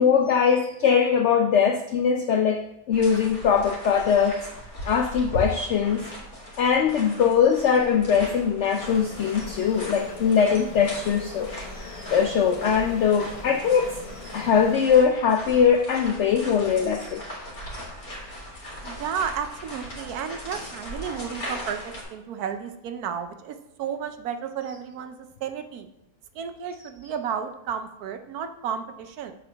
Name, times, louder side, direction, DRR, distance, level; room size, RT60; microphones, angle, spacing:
voice 1, 0.0-4.5 4.8-6.0 6.6-17.2, left 7 dB, 85° left, 6 dB, 0.6 m, -21 dB
sound 1, 2.9-22.0, equal, 60° left, 2.6 m, -38 dB
sound 2, 8.7-15.4, left 3 dB, 35° left, 0.5 m, -42 dB
voice 2, 18.8-25.9 26.3-29.3, right 7 dB, 70° right, 8 dB, 1.1 m, -32 dB
7.4 x 7.3 x 3.4 m, 0.87 s
omnidirectional pair, 1.7 m